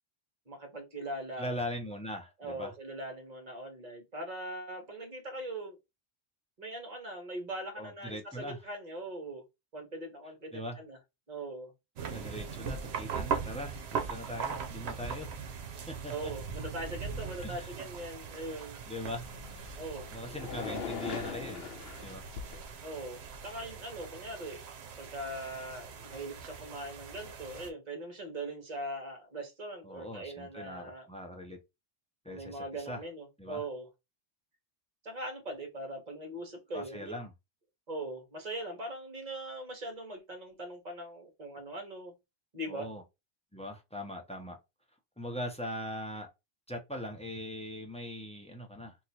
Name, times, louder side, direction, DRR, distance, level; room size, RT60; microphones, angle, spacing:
voice 1, 0.5-1.6 2.4-5.8 6.6-9.4 9.7-11.0 11.3-11.7 16.1-18.8 19.7-20.0 22.8-24.6 25.0-31.1 32.3-33.9 35.0-37.1 37.9-42.1 42.5-42.9, right 1 dB, 40° right, 1.2 m, -41 dB
voice 2, 1.4-2.7 7.8-8.6 10.5-10.8 12.1-15.5 15.9-16.3 17.4-17.7 18.9-19.8 20.1-21.6 22.0-22.3 29.8-31.6 32.2-33.0 33.4-33.6 36.7-37.3 42.7-43.0 43.5-44.6 45.2-46.3 46.7-49.0, equal, 10° left, 0.6 m, -41 dB
sound 1, 12.0-27.7, right 6 dB, 80° right, 0.9 m, -40 dB
sound 2, 19.0-22.7, left 6 dB, 70° left, 0.8 m, -41 dB
2.9 x 2.4 x 4.0 m
omnidirectional pair, 1.1 m